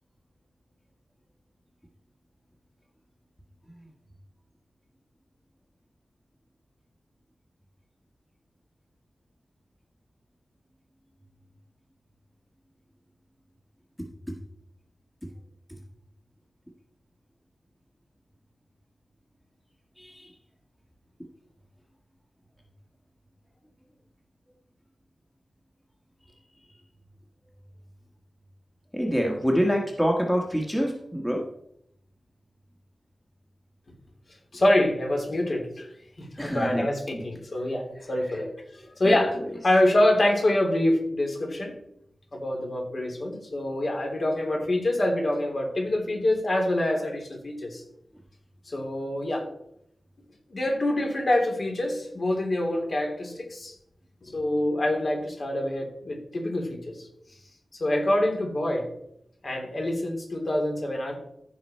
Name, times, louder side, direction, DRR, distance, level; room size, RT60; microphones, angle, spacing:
voice 1, 20.0-20.3 28.9-31.4 36.4-36.8 37.1-37.2 39.0-39.2, equal, 5° left, 0 dB, 1.5 m, -26 dB
voice 2, 34.5-35.9 36.2-39.4 39.6-41.7 42.3-47.8 48.7-49.5 50.5-53.7 54.3-57.1 57.8-58.9 59.4-61.2, left 1 dB, 50° left, 1 dB, 3.3 m, -26 dB
14.5 x 6.0 x 4.4 m, 0.74 s
wide cardioid pair, 85°, 0 cm